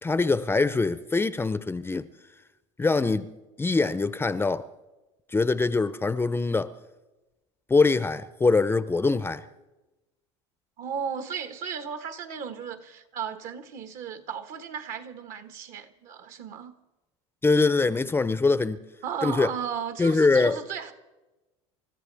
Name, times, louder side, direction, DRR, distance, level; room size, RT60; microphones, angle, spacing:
voice 1, 0.0-2.1 2.8-3.3 3.6-4.7 5.3-6.7 7.7-9.4 17.4-18.8 19.2-19.5 20.0-20.6, left 3 dB, 15° left, 0.6 m, -23 dB
voice 2, 10.8-16.7 19.0-20.9, right 7 dB, 60° right, 1.6 m, -35 dB
28.5 x 14.0 x 3.5 m
supercardioid pair, 90°, 15 cm